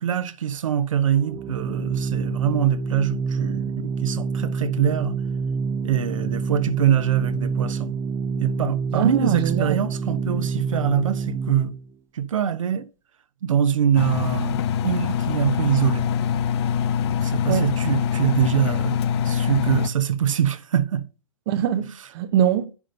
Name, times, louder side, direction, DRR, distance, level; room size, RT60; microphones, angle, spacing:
voice 1, 0.0-5.2 5.8-8.0 8.4-11.7 12.1-12.9 13.4-16.1 17.2-21.0, right 9 dB, 65° right, 1.1 m, -24 dB
Organ, 1.1-11.9, right 5 dB, 15° right, 0.5 m, -27 dB
voice 2, 8.9-9.8 17.5-17.7 21.5-22.7, right 10 dB, 45° right, 0.9 m, -23 dB
Engine, 14.0-19.9, left 8 dB, 50° left, 0.8 m, -24 dB
10.0 x 5.0 x 5.3 m
figure-of-eight pair, 115°, 18 cm